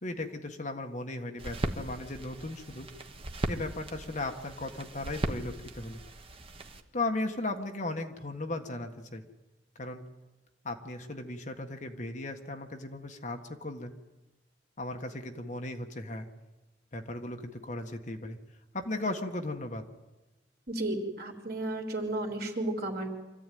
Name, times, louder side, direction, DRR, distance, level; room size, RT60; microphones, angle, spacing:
voice 1, 0.0-2.9 3.5-6.0 6.9-9.2 9.8-10.0 10.6-13.9 14.8-16.3 16.9-18.4 18.7-19.8, left 2 dB, 40° left, 5 dB, 1.5 m, -36 dB
sound 1, 1.4-6.8, right 1 dB, 30° right, 1.4 m, -38 dB
voice 2, 20.7-23.1, right 1 dB, 55° right, 1 dB, 3.7 m, -33 dB
25.0 x 14.5 x 9.3 m, 1.1 s
head